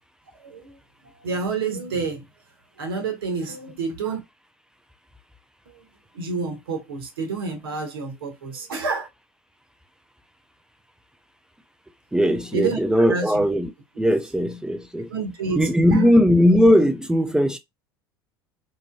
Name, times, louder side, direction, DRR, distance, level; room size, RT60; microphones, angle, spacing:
voice 1, 0.4-0.8 1.0-2.2 2.8-4.2 5.7-5.8 6.1-9.1 12.5-13.4 15.1-16.1, right 4 dB, 70° right, 1.0 m, -29 dB
voice 2, 12.1-13.7 14.0-15.1 15.6-17.6, equal, 5° right, 0.4 m, -18 dB
3.1 x 2.5 x 2.2 m
figure-of-eight pair, 70°, 13 cm